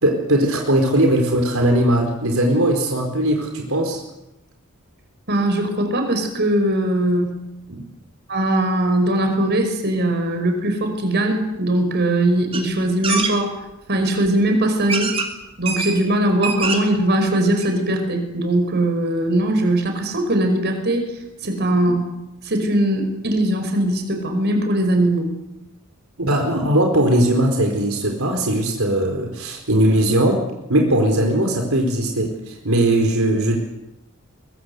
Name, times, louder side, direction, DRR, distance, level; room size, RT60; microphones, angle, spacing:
voice 1, 0.0-4.0 7.7-7.8 26.2-30.4 30.7-33.6, right 1 dB, 75° right, 2 dB, 4.4 m, -19 dB
voice 2, 5.3-7.4 8.3-13.6 13.9-15.1 15.6-21.0 21.4-22.1 22.4-25.3, right 1 dB, 50° right, 6 dB, 5.5 m, -20 dB
sound 1, 12.5-12.6 13.0-13.3 14.2-14.3 14.9-15.3 15.6-16.0 16.3-16.9 17.3-17.4 17.6-17.7, right 4 dB, 25° right, 3.3 m, -24 dB
23.0 x 22.5 x 8.2 m, 0.94 s
head